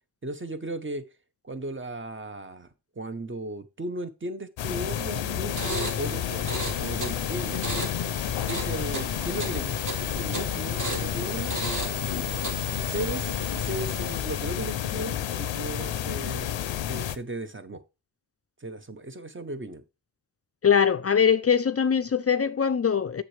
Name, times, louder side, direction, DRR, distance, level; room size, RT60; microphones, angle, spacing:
voice 1, 0.2-1.1 1.4-2.7 3.0-7.7 8.5-11.5 12.1-12.3 12.9-16.5 16.8-17.8 18.6-19.8, right 2 dB, 30° right, 0.8 m, -36 dB
sound 1, 4.6-17.2, left 10 dB, 85° left, 0.6 m, -30 dB
sound 2, 5.5-14.4, right 1 dB, 45° right, 2.1 m, -36 dB
voice 2, 20.6-23.2, left 7 dB, 35° left, 0.4 m, -22 dB
7.4 x 6.5 x 3.2 m
cardioid pair, 60°, 44 cm